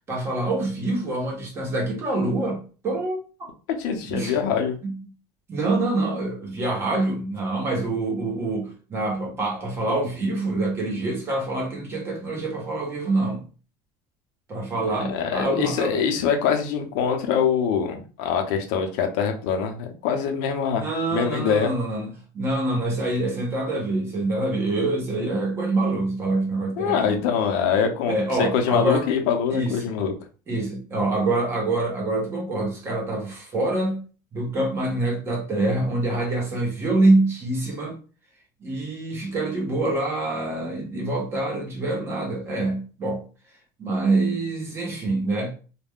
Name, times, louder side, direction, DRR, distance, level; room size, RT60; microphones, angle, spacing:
voice 1, 0.1-3.2 4.0-4.4 4.8-4.9 5.5-13.4 14.5-16.1 20.7-22.1 22.3-27.2 28.1-29.1 29.5-30.0 30.5-34.0 34.3-38.0 38.6-43.2 43.8-45.5, right 2 dB, 25° right, 0.9 m, -25 dB
voice 2, 3.8-4.7 15.1-21.7 26.8-30.1, left 7 dB, 75° left, 0.7 m, -24 dB
2.4 x 2.2 x 3.5 m
cardioid pair, 160°, 10 cm